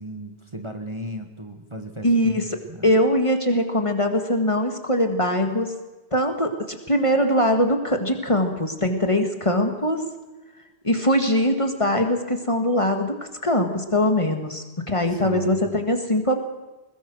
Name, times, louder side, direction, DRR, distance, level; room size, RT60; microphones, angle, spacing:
voice 1, 0.0-2.4 2.6-3.0 15.1-15.7, right 1 dB, 25° right, 5 dB, 1.5 m, -36 dB
voice 2, 2.0-2.4 2.8-5.7 6.1-6.5 6.9-10.0 10.8-13.1 13.4-16.4, left 1 dB, 30° left, 5 dB, 1.9 m, -21 dB
21.0 x 20.5 x 6.3 m, 1.2 s
omnidirectional pair, 1.1 m